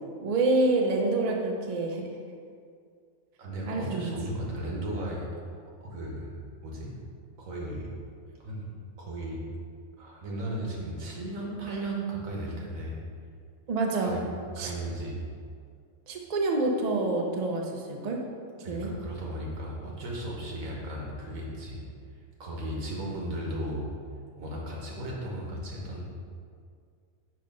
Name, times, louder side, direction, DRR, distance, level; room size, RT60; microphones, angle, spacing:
voice 1, 0.2-2.0 3.7-4.1 13.7-14.2 14.6-14.7 16.1-18.2 18.7-18.9, right 2 dB, 45° right, 1 dB, 0.5 m, -27 dB
voice 2, 3.4-5.3 5.8-6.3 6.6-7.0 7.4-7.9 8.4-8.7 9.0-9.4 10.0-13.0 14.0-14.2 14.6-15.2 18.6-21.8 22.4-23.8 24.4-26.0, right 1 dB, 85° right, -3 dB, 1.5 m, -35 dB
5.5 x 3.3 x 5.2 m, 2.2 s
omnidirectional pair, 1.4 m